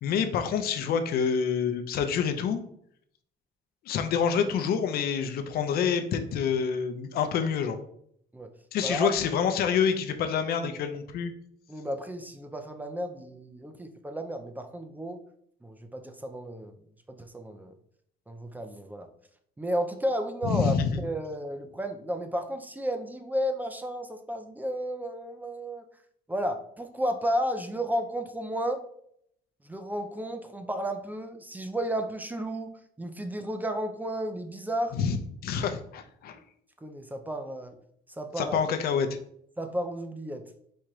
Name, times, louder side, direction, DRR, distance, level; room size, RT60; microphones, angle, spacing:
voice 1, 0.0-2.6 3.8-7.8 8.7-11.3 20.4-21.0 34.9-36.4 38.4-39.1, left 7 dB, 65° left, 7 dB, 0.7 m, -27 dB
voice 2, 11.7-15.2 15.6-16.7 17.1-17.7 18.3-19.1 19.6-20.7 21.0-25.8 26.3-28.8 29.6-35.0 36.8-37.7 38.2-38.6 39.6-40.4, equal, 10° right, 6 dB, 0.5 m, -32 dB
4.3 x 2.4 x 4.7 m, 0.68 s
cardioid pair, 110°, 17 cm